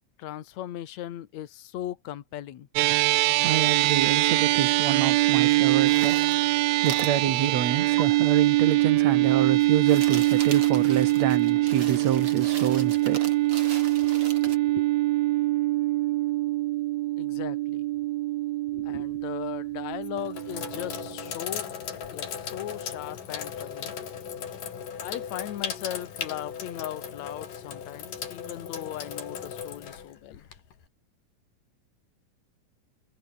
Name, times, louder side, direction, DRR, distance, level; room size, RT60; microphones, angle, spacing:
voice 1, 0.2-2.7 4.3-4.4 14.0-14.1 14.4-14.9 17.2-17.8 18.7-21.7 22.1-23.9 25.0-30.5, left 12 dB, 65° left, 2.6 m, -38 dB
sound 1, 2.8-21.3, right 18 dB, 80° right, 1.6 m, -24 dB
voice 2, 3.4-13.3, right 10 dB, 60° right, 2.7 m, -28 dB
sound 2, 5.8-6.5 6.9-7.2 8.0-8.1 9.6-14.6, right 5 dB, 45° right, 3.8 m, -39 dB
Sink (filling or washing), 18.9-19.3 19.9-30.8, left 7 dB, 85° left, 4.6 m, -37 dB
omnidirectional pair, 3.7 m